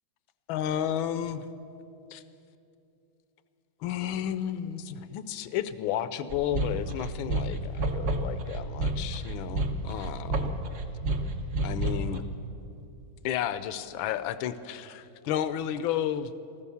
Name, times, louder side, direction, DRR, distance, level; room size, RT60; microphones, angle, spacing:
voice 1, 0.5-1.5 2.1-2.2 3.8-10.5 11.6-12.2 13.2-16.3, left 10 dB, 75° left, 13 dB, 1.3 m, -32 dB
sound 1, 6.3-12.2, right 2 dB, 55° right, 0.9 m, -30 dB
14.0 x 13.5 x 7.0 m, 2.8 s
omnidirectional pair, 2.3 m